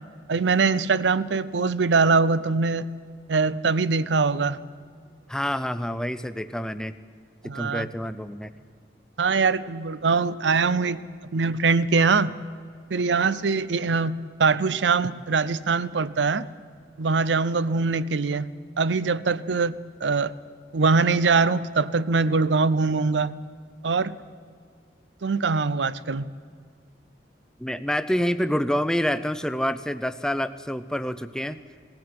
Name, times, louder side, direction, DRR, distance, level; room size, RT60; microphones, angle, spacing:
voice 1, 0.3-2.9 3.3-4.6 7.4-7.9 9.2-11.0 11.3-12.3 12.9-16.5 17.0-18.5 18.8-19.7 20.0-20.3 20.7-23.4 23.8-24.1 25.2-26.3, right 4 dB, 85° right, 17 dB, 0.6 m, -22 dB
voice 2, 5.3-6.9 7.5-8.5 27.6-31.6, equal, 5° left, 12 dB, 0.5 m, -27 dB
19.0 x 15.0 x 9.5 m, 2.1 s
head